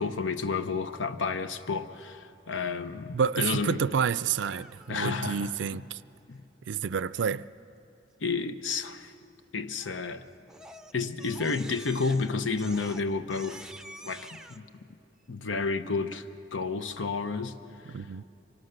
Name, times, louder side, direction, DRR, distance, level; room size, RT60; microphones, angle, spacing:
voice 1, 0.0-3.9 4.9-5.8 6.3-6.4 8.2-9.1 9.5-10.3 10.9-13.7 14.0-14.7 15.3-18.2, left 4 dB, 90° left, 0.9 m, -31 dB
voice 2, 3.1-6.0 6.7-7.4 17.9-18.2, right 6 dB, 70° right, 0.4 m, -29 dB
Crying sobbing, 4.2-5.1 9.8-10.1 10.5-14.6, right 1 dB, 5° right, 0.5 m, -48 dB
24.5 x 18.5 x 6.6 m
head